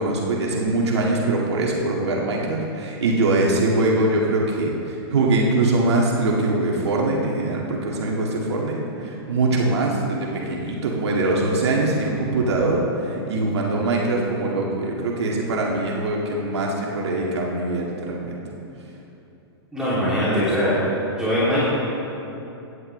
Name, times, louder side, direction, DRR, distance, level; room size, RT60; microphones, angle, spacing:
voice 1, 0.0-18.4, right 2 dB, 85° right, -2 dB, 1.9 m, -22 dB
voice 2, 19.7-20.8 21.2-21.7, equal, 5° right, -11 dB, 2.8 m, -21 dB
16.5 x 9.8 x 3.2 m, 2.9 s
hypercardioid pair, 150°, 14 cm